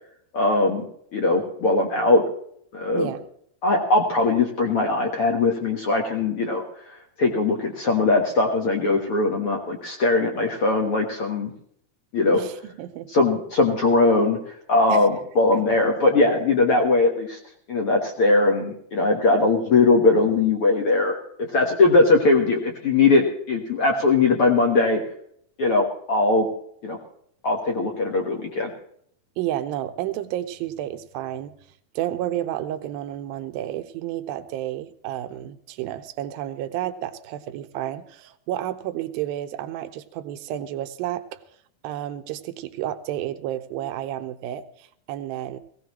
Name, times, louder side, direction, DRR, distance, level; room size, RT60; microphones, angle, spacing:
voice 1, 0.3-0.8 1.1-2.2 2.7-3.1 3.6-6.6 7.2-11.5 12.1-12.4 13.1-17.4 17.7-25.0 25.6-26.5 26.8-27.0 27.4-28.7, left 3 dB, 60° left, 2 dB, 1.5 m, -20 dB
voice 2, 12.3-13.1 14.9-15.1 15.5-15.8 29.4-31.5 32.0-41.4 41.8-45.6, right 12 dB, 80° right, 9 dB, 2.5 m, -31 dB
18.0 x 17.0 x 3.1 m, 0.67 s
omnidirectional pair, 4.5 m